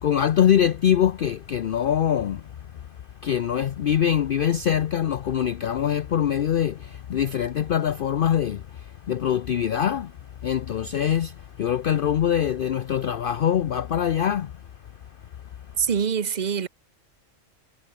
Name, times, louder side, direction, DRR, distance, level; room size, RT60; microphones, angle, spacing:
voice 1, 0.0-2.9 3.2-10.2 10.4-14.5, left 9 dB, 55° left, 0.7 m, -24 dB
voice 2, 15.8-16.7, right 7 dB, 40° right, 1.0 m, -24 dB
omnidirectional pair, 1.3 m